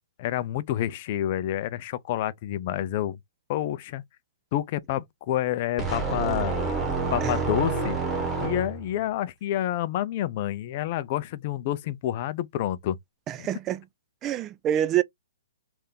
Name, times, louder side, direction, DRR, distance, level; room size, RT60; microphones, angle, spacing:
voice 1, 0.2-3.2 3.5-4.0 4.5-6.5 7.1-8.0 8.4-13.0 13.4-13.5, left 12 dB, 40° left, 0.5 m, -28 dB
sound 1, 5.8-9.0, right 4 dB, 5° right, 1.3 m, -28 dB
voice 2, 13.3-13.8 14.2-15.0, right 11 dB, 25° right, 0.3 m, -26 dB
3.4 x 2.6 x 3.8 m
hypercardioid pair, 140°, 0 cm